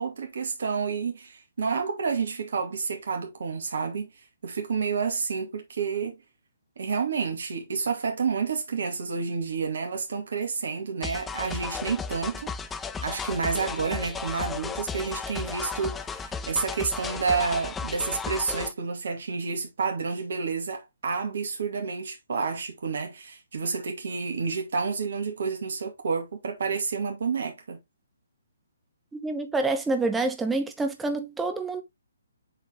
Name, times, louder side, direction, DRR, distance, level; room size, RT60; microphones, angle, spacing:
voice 1, 0.0-4.1 4.4-6.2 6.8-12.5 13.0-27.8, right 5 dB, 60° right, 2.2 m, -29 dB
sound 1, 11.0-18.7, left 5 dB, 10° left, 0.4 m, -34 dB
voice 2, 29.2-31.8, right 3 dB, 5° right, 1.1 m, -27 dB
7.7 x 4.2 x 3.5 m
figure-of-eight pair, 140°, 0 cm